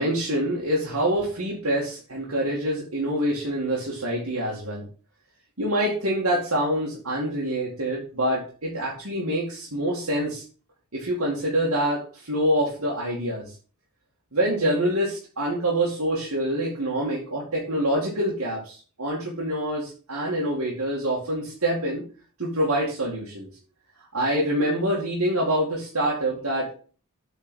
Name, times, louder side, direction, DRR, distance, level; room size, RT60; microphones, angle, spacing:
voice 1, 0.0-4.8 5.6-10.4 10.9-13.5 14.3-22.0 22.4-23.5 24.1-26.8, right 1 dB, 85° right, -4 dB, 2.3 m, -26 dB
8.4 x 4.5 x 6.3 m, 0.39 s
head